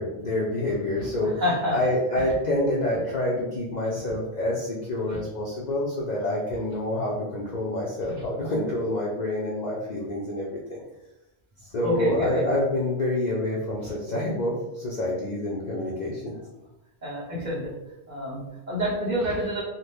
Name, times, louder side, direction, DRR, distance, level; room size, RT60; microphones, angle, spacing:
voice 1, 0.0-10.8 11.7-16.4, left 1 dB, 55° left, -4 dB, 0.5 m, -27 dB
voice 2, 1.2-1.7 5.1-5.2 11.8-12.4 17.0-17.7 18.1-19.6, equal, 45° right, -3 dB, 0.8 m, -27 dB
2.7 x 2.1 x 3.3 m, 0.93 s
omnidirectional pair, 1.1 m